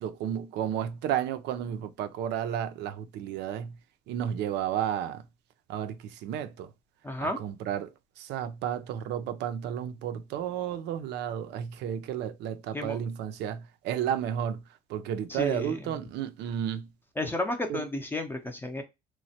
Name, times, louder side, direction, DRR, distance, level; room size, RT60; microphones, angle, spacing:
voice 1, 0.0-3.7 4.1-5.2 5.7-6.7 7.2-14.6 14.9-16.9 17.7-17.8, right 9 dB, 80° right, 0.5 m, -32 dB
voice 2, 7.0-7.4 12.7-13.0 15.3-15.8 17.2-18.8, left 1 dB, 10° left, 0.5 m, -32 dB
3.1 x 2.1 x 2.7 m
cardioid pair, 130°, 17 cm